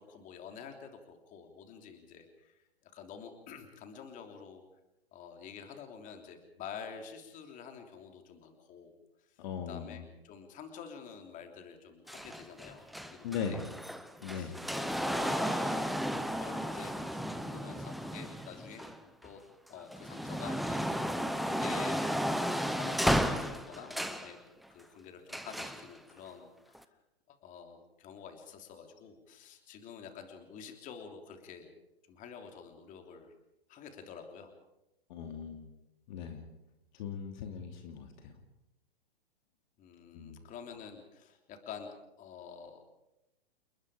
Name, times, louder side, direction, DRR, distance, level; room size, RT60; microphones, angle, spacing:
voice 1, 0.0-4.6 5.1-8.9 9.7-13.6 14.2-18.9 19.2-19.4 19.7-24.4 24.7-26.8 27.3-31.7 32.1-33.3 33.7-34.5 39.8-42.9, left 6 dB, 25° left, 5 dB, 3.4 m, -48 dB
voice 2, 9.4-10.0 13.2-13.7 14.2-14.6 35.1-35.7 36.1-36.4 36.9-38.3 40.1-40.4, left 7 dB, 45° left, 5 dB, 2.9 m, -39 dB
sound 1, 12.1-19.3 19.8-24.3 25.3-25.9 26.7-26.8, equal, ahead, 0.7 m, -34 dB
29.5 x 20.5 x 5.0 m, 0.90 s
hypercardioid pair, 130°, 31 cm